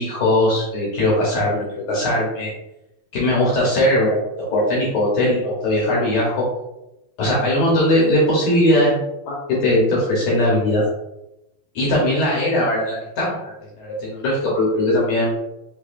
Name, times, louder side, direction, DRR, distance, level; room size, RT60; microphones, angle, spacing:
voice 1, 0.0-2.5 3.1-6.4 7.2-9.0 9.3-9.4 9.6-10.8 11.7-15.3, left 1 dB, 70° left, -5 dB, 1.9 m, -19 dB
7.0 x 2.8 x 2.5 m, 0.91 s
omnidirectional pair, 4.8 m